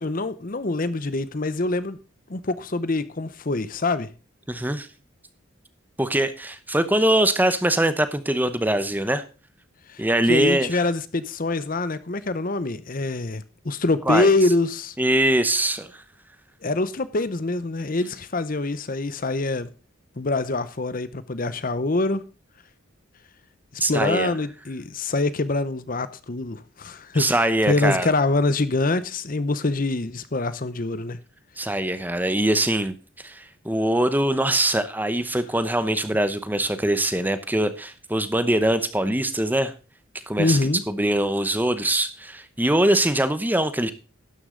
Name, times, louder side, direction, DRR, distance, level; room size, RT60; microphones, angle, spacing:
voice 1, 0.0-2.0 2.3-4.1 9.9-10.0 10.3-15.0 16.6-19.7 20.2-22.2 23.7-31.2 40.4-40.8, left 2 dB, 40° left, 0.7 m, -25 dB
voice 2, 4.5-4.9 6.0-9.2 10.0-10.8 14.1-14.3 15.0-16.0 23.8-24.4 27.1-28.1 31.6-39.7 40.3-40.6 40.9-43.9, right 1 dB, 10° right, 0.8 m, -22 dB
12.5 x 9.8 x 3.8 m
head